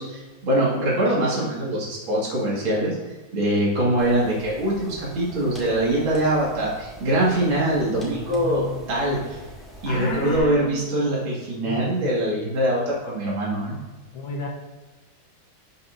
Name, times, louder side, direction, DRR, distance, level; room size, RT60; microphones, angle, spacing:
voice 1, 0.0-3.0 3.3-9.4 9.8-13.8, right 1 dB, 80° right, -6 dB, 2.8 m, -23 dB
sound 1, 4.0-10.4, equal, ahead, 2.2 m, -43 dB
voice 2, 8.1-9.3 9.9-10.8 11.7-12.2 14.1-14.5, left 4 dB, 80° left, 1 dB, 1.8 m, -33 dB
12.5 x 5.7 x 2.6 m, 1.2 s
omnidirectional pair, 2.2 m